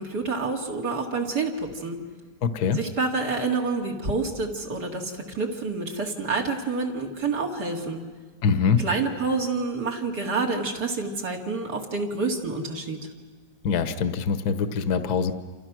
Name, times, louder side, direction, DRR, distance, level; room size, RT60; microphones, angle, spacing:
voice 1, 0.0-2.0 2.7-8.0 8.8-13.0, right 3 dB, 60° right, 0 dB, 3.0 m, -28 dB
voice 2, 2.4-2.8 8.4-8.8 13.6-15.3, left 6 dB, 60° left, 9 dB, 1.5 m, -23 dB
28.0 x 28.0 x 6.2 m, 1.5 s
omnidirectional pair, 2.0 m